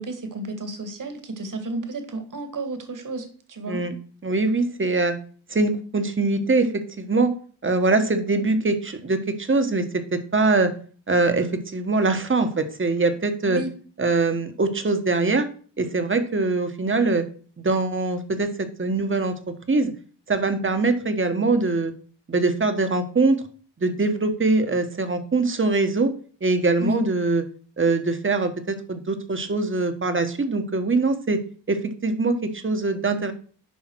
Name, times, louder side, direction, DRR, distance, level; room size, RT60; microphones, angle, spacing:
voice 1, 0.0-3.8 13.5-13.7 26.8-27.0, right 2 dB, 45° right, 7 dB, 2.1 m, -31 dB
voice 2, 4.2-5.2 5.5-7.3 7.6-10.7 11.1-13.6 14.0-15.5 15.8-17.2 17.6-18.5 18.8-19.3 19.7-19.9 20.3-21.9 22.3-23.4 23.8-26.1 26.4-27.4 27.8-31.4 31.7-33.3, right 3 dB, 25° right, 9 dB, 1.4 m, -22 dB
10.5 x 5.6 x 4.7 m, 0.43 s
cardioid pair, 95°, 45 cm